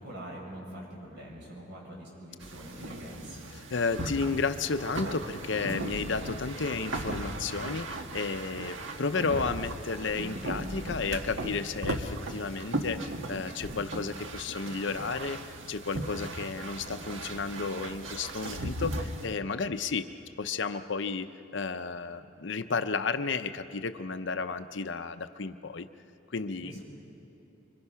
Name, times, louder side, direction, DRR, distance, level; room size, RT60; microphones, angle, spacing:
voice 1, 0.0-3.5 26.6-26.8, right 1 dB, 55° right, -3 dB, 7.0 m, -44 dB
sound 1, 2.4-19.3, right 1 dB, 70° right, 1.5 m, -37 dB
voice 2, 3.5-25.9 26.3-26.8, left 4 dB, 65° left, 10 dB, 0.7 m, -33 dB
26.0 x 24.5 x 5.7 m, 2.9 s
head